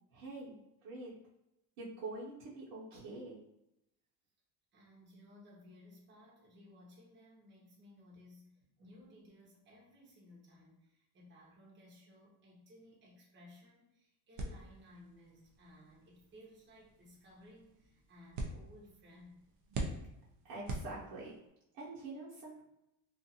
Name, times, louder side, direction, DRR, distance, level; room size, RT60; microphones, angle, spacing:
voice 1, 0.1-0.5 0.8-1.1 1.8-3.4 20.4-21.4 21.7-22.6, right 2 dB, 60° right, -9 dB, 1.1 m, -45 dB
voice 2, 4.7-8.5 8.8-19.4, left 1 dB, 25° right, -5 dB, 0.9 m, -59 dB
sound 1, 14.4-21.5, right 2 dB, 40° right, 0.5 m, -45 dB
2.6 x 2.5 x 2.7 m, 0.86 s
supercardioid pair, 120°, 47 cm